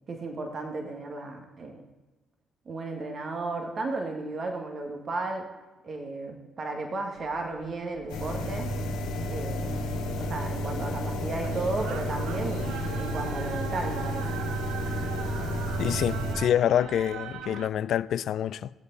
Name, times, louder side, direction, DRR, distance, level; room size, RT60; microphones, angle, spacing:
voice 1, 0.1-1.8 2.7-5.5 5.8-8.7 9.3-9.8 10.2-12.7 13.0-14.4, right 2 dB, 50° right, 1.8 m, -34 dB
sound 1, 7.2-17.7, right 8 dB, 75° right, 0.7 m, -42 dB
sound 2, 8.1-16.4, equal, 85° left, 2.4 m, -31 dB
voice 2, 15.8-18.7, left 10 dB, 65° left, 0.3 m, -26 dB
18.0 x 8.1 x 4.1 m
hypercardioid pair, 50°, 0 cm